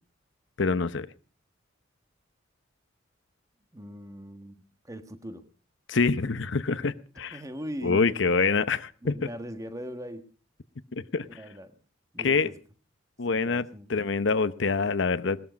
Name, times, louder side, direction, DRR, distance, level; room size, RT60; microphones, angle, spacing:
voice 1, 0.6-1.1 5.9-7.4 7.8-9.1 10.9-11.3 12.2-12.5 13.2-15.4, left 4 dB, 65° left, 13 dB, 0.8 m, -26 dB
voice 2, 3.7-4.6 4.8-5.4 7.3-8.4 9.0-10.3 11.3-11.8 12.1-12.6 13.3-13.9, equal, 15° right, 9 dB, 1.4 m, -40 dB
19.0 x 13.0 x 5.2 m, 0.41 s
head